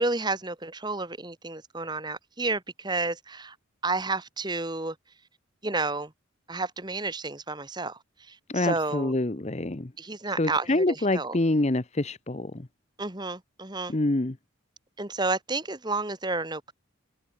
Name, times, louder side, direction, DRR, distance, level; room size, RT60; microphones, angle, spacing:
voice 1, 0.0-3.5 3.8-4.9 5.6-6.1 6.5-9.1 10.0-11.4 13.0-13.9 15.0-16.7, right 3 dB, 20° right, 1.5 m, -31 dB
voice 2, 8.5-9.9 10.4-12.7 13.9-14.3, left 2 dB, 35° left, 0.9 m, -26 dB
head